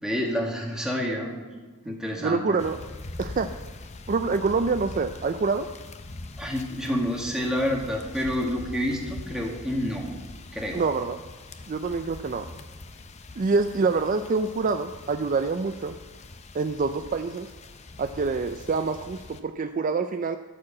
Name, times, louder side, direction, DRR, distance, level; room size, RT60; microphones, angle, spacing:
voice 1, 0.0-2.6 6.4-10.1 10.5-10.8, equal, 5° right, -2 dB, 1.8 m, -29 dB
voice 2, 1.9-2.8 3.2-3.5 4.1-5.7 10.7-11.2 11.7-12.5 13.4-16.0 16.5-17.5 18.0-20.4, right 4 dB, 40° right, 8 dB, 0.4 m, -26 dB
sound 1, 2.6-19.4, left 2 dB, 30° left, 0.6 m, -43 dB
13.5 x 4.8 x 7.3 m, 1.4 s
head